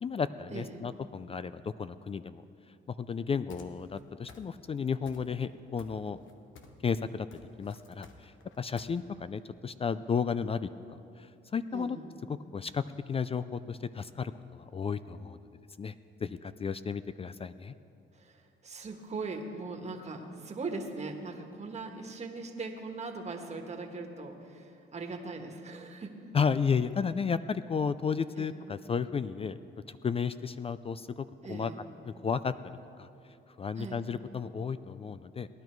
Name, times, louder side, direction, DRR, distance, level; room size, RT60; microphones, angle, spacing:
voice 1, 0.0-2.4 2.9-6.2 6.8-7.3 7.6-10.7 11.2-12.0 12.3-15.4 15.8-15.9 16.2-17.7 26.3-29.6 29.9-31.7 32.1-32.5 33.0-33.1 33.6-35.5, left 6 dB, 30° left, 14 dB, 0.4 m, -33 dB
voice 2, 0.5-0.8 11.7-12.1 18.1-26.1 28.4-28.5 31.4-31.8 33.8-34.0, right 3 dB, 35° right, 3 dB, 1.5 m, -40 dB
sound 1, 3.5-4.0 4.3-4.8 5.1-5.5 5.8-6.8 7.1-8.9, left 5 dB, 75° left, 1.1 m, -53 dB
18.5 x 10.5 x 4.6 m, 2.6 s
cardioid pair, 90°, 20 cm